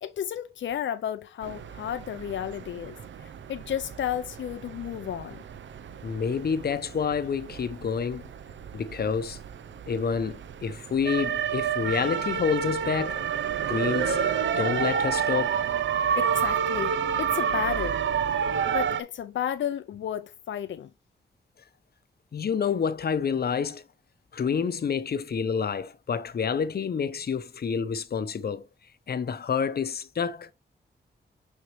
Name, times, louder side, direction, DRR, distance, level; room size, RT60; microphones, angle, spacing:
voice 1, 0.0-5.4 16.2-18.0 18.7-20.9, left 10 dB, 90° left, 0.5 m, -33 dB
sound 1, 1.4-19.0, right 8 dB, 80° right, 0.6 m, -30 dB
voice 2, 6.0-8.2 8.7-9.4 9.9-13.2 13.7-14.2 14.6-15.6 22.3-23.8 24.3-28.6 29.1-30.5, left 6 dB, 55° left, 0.8 m, -28 dB
6.3 x 5.3 x 3.1 m
wide cardioid pair, 110°, 19 cm